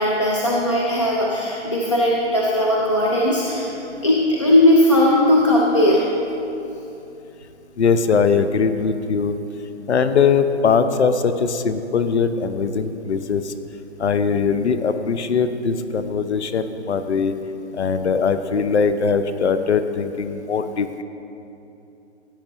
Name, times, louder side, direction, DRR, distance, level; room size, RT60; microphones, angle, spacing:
voice 1, 0.0-3.7 4.0-6.0, left 1 dB, 25° left, -3 dB, 0.5 m, -18 dB
voice 2, 7.8-9.3 9.9-13.5 14.0-17.3 17.7-21.0, left 5 dB, 70° left, 10 dB, 0.7 m, -20 dB
16.0 x 8.7 x 3.0 m, 2.8 s
hypercardioid pair, 175°, 36 cm